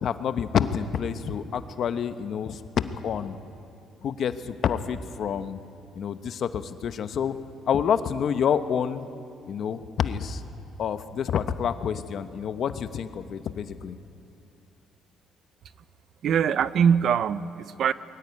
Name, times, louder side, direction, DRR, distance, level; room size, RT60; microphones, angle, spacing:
voice 1, 0.0-3.4 4.0-5.6 6.0-7.4 7.7-9.1 9.5-10.4 10.8-14.0, left 8 dB, 55° left, 11 dB, 0.9 m, -28 dB
voice 2, 16.2-17.9, right 7 dB, 55° right, 16 dB, 0.6 m, -22 dB
21.5 x 14.5 x 9.7 m, 2.7 s
cardioid pair, 125°, 0 cm